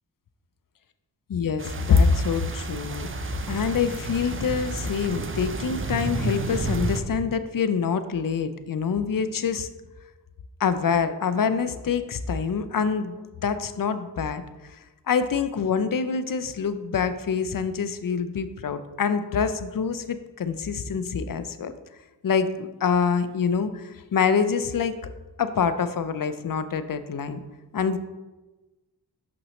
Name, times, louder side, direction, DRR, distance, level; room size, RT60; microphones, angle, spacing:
voice 1, 1.3-9.7 10.6-13.2 13.4-14.4 15.1-21.7 22.2-25.0 25.4-27.4 27.7-28.0, left 6 dB, 50° left, 11 dB, 0.6 m, -25 dB
sound 1, 1.6-7.0, right 3 dB, 30° right, 0.6 m, -31 dB
6.2 x 6.0 x 3.1 m, 1.1 s
cardioid pair, 55°, 44 cm